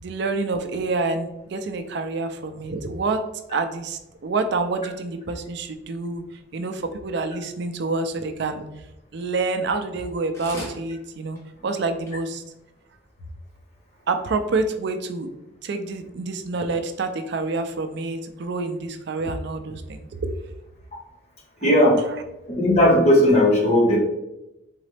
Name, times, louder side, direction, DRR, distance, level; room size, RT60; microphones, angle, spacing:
voice 1, 0.0-3.2 3.5-6.2 6.5-8.6 9.1-12.4 14.1-15.3 15.6-20.1, right 3 dB, 60° right, 7 dB, 0.4 m, -27 dB
sound 1, 9.9-10.1 10.3-10.8 11.4-11.5 11.8-11.9 12.0-12.1 12.8-12.9, equal, 15° left, 1.3 m, -37 dB
voice 2, 21.6-22.0 22.5-24.0, left 1 dB, 35° left, -3 dB, 1.3 m, -16 dB
4.0 x 3.8 x 3.3 m, 0.92 s
head